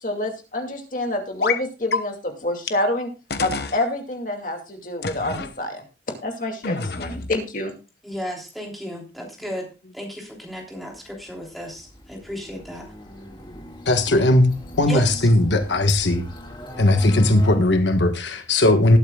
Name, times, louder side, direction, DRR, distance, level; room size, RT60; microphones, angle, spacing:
voice 1, 0.0-3.1 3.4-5.8 6.2-7.7, left 1 dB, 45° left, 2.4 m, -27 dB
sound 1, 1.4-1.6 1.9-2.0 2.7-2.8 3.3-3.8 5.0-5.5 6.6-7.4, left 4 dB, 60° left, 1.0 m, -27 dB
voice 2, 8.0-9.7 9.9-12.8 14.9-15.3, equal, ahead, 3.2 m, -34 dB
sound 2, 11.1-17.6, left 1 dB, 25° left, 1.9 m, -38 dB
voice 3, 13.9-14.5 14.8-16.2 16.8-19.0, left 1 dB, 85° left, 1.4 m, -18 dB
19.5 x 8.7 x 2.3 m
head